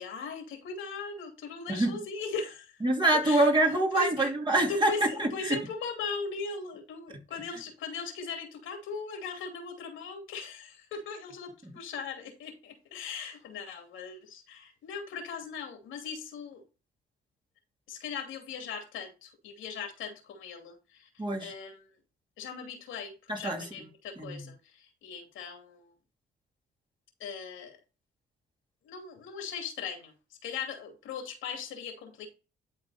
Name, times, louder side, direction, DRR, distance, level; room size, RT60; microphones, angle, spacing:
voice 1, 0.0-2.8 3.2-3.5 3.9-4.3 4.7-16.6 17.9-21.1 21.4-21.9 22.4-25.9 27.2-27.8 28.8-32.3, left 5 dB, 85° left, 2.7 m, -39 dB
voice 2, 1.7-2.0 2.8-5.6 21.2-21.5 23.3-23.7 24.2-24.4, right 2 dB, 25° right, 2.7 m, -26 dB
11.5 x 4.0 x 4.3 m
cardioid pair, 90°, 20 cm